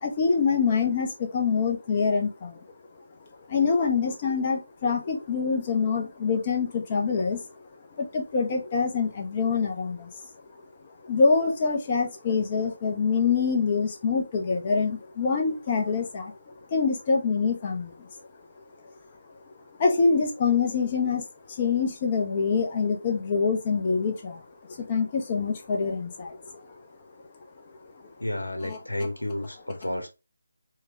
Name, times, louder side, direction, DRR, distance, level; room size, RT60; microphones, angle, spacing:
voice 1, 0.0-2.6 3.5-7.7 8.0-10.1 11.0-18.1 19.8-26.6 28.6-28.8, left 5 dB, 25° left, 0.7 m, -25 dB
voice 2, 28.2-30.1, left 1 dB, 80° left, 1.1 m, -31 dB
4.7 x 2.3 x 2.8 m
figure-of-eight pair, 155°, 0 cm